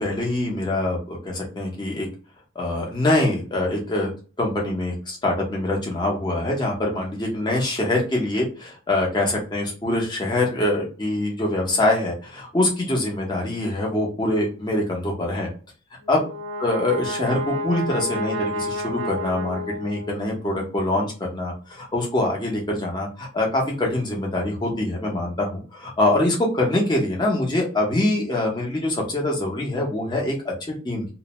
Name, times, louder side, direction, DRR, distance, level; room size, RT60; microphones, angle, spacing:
voice 1, 0.0-2.1 2.5-4.1 4.4-15.5 16.1-16.2 16.6-31.1, left 1 dB, 20° left, -1 dB, 0.7 m, -24 dB
Brass instrument, 16.0-20.4, left 1 dB, 70° right, 0.6 m, -30 dB
2.6 x 2.0 x 2.9 m, 0.37 s
head